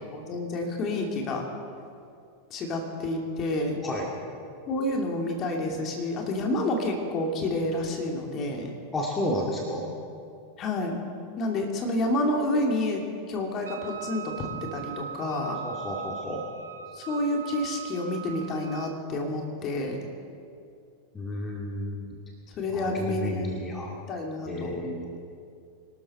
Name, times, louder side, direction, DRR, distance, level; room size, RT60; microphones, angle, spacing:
voice 1, 0.1-1.4 2.5-3.8 4.7-8.7 10.6-11.0 11.4-13.0 13.3-15.6 16.9-20.0 22.6-23.6 24.1-24.8, left 1 dB, 35° left, 1 dB, 2.8 m, -29 dB
voice 2, 8.9-9.9 15.6-16.4 21.1-22.2 22.7-23.9 24.4-25.1, left 1 dB, 20° left, -1 dB, 2.3 m, -32 dB
Wind instrument woodwind instrument, 13.6-19.0, right 8 dB, 75° right, 0.8 m, -40 dB
24.5 x 13.0 x 4.4 m, 2.4 s
figure-of-eight pair, 90°, 0 cm